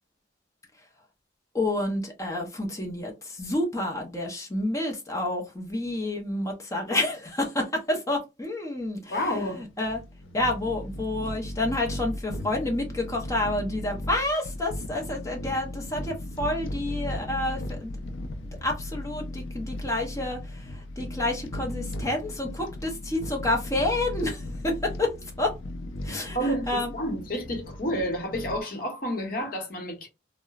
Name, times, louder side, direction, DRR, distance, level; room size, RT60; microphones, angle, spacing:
voice 1, 1.5-10.0 10.3-17.9 18.6-25.5 26.0-26.9, left 1 dB, 15° left, 0.6 m, -29 dB
voice 2, 9.1-9.6 26.1-30.1, equal, 45° left, 0.8 m, -30 dB
sound 1, 9.2-28.6, left 1 dB, 90° left, 0.4 m, -37 dB
2.8 x 2.0 x 2.3 m
head